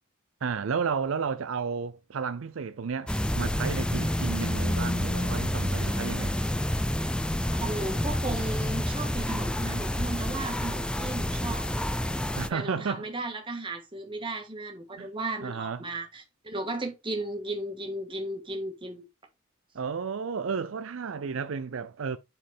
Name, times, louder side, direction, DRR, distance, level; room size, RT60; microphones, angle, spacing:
voice 1, 0.4-6.4 12.3-13.1 15.0-15.1 15.4-15.9 19.7-22.2, right 5 dB, 70° right, 0.5 m, -32 dB
sound 1, 3.1-12.5, left 1 dB, 5° left, 0.4 m, -29 dB
voice 2, 7.5-11.8 12.5-19.0, right 2 dB, 25° right, 1.8 m, -35 dB
7.7 x 4.5 x 3.5 m
head